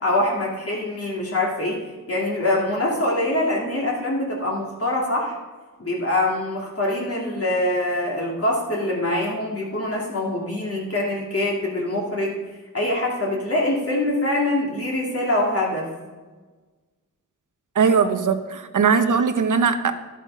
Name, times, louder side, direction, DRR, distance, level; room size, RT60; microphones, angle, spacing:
voice 1, 0.0-5.4 5.8-12.3 12.7-15.9, left 1 dB, 45° left, -3 dB, 2.3 m, -24 dB
voice 2, 17.7-19.9, right 6 dB, 65° right, 9 dB, 1.0 m, -20 dB
12.0 x 8.6 x 5.5 m, 1.3 s
wide cardioid pair, 120°, 33 cm